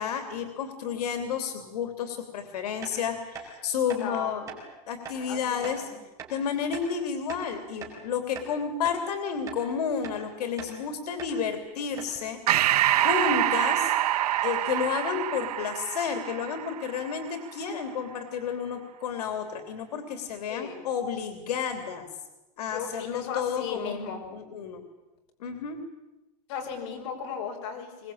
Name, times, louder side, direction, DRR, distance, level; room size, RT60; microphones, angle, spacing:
voice 1, 0.0-4.6 4.9-5.9 6.3-13.9 14.4-22.1 22.6-24.8 25.4-25.8, left 7 dB, 90° left, 7 dB, 3.2 m, -31 dB
sound 1, 2.8-3.0 3.3-3.5 3.9-4.0 4.5-4.6 5.0-5.2 5.6-5.8 6.2-6.3 6.7-6.9 7.3-8.0 8.3-8.5 8.8-9.0 9.5-9.6 10.0-10.2 10.6-10.8 11.2-11.4 11.6-11.7 12.0-12.2, right 6 dB, 15° right, 4.8 m, -41 dB
voice 2, 3.9-4.5 5.3-6.0 20.5-20.8 22.6-24.2 26.5-28.1, left 6 dB, 50° left, 2 dB, 5.3 m, -36 dB
Breathing, 12.5-17.3, right 14 dB, 80° right, 1.1 m, -26 dB
24.0 x 21.0 x 8.8 m, 0.98 s
supercardioid pair, 165°, 20 cm